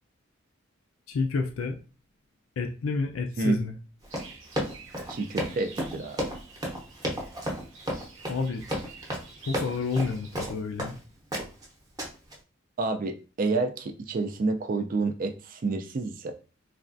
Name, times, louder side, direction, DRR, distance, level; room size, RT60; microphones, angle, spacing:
voice 1, 1.1-1.8 2.6-3.7 8.3-8.6 9.5-11.0, left 4 dB, 80° left, 3 dB, 0.4 m, -29 dB
Run, 4.0-11.0 11.3-11.6 12.0-12.3, equal, 20° right, 0.7 m, -32 dB
sound 1, 4.1-10.4, right 4 dB, 80° right, 0.8 m, -50 dB
voice 2, 5.1-6.3 12.8-16.3, right 3 dB, 45° right, 7 dB, 0.4 m, -29 dB
3.2 x 2.3 x 2.5 m, 0.34 s
head